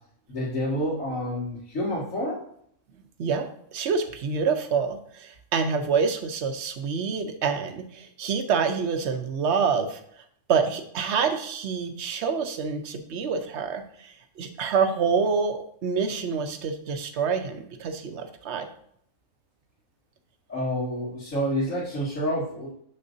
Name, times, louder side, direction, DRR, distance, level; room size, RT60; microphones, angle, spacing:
voice 1, 0.3-2.4 20.5-22.7, equal, 75° left, -9 dB, 2.4 m, -28 dB
voice 2, 3.2-10.0 10.5-18.7, right 5 dB, 60° right, 7 dB, 1.0 m, -27 dB
6.6 x 6.4 x 2.7 m, 0.66 s
omnidirectional pair, 1.4 m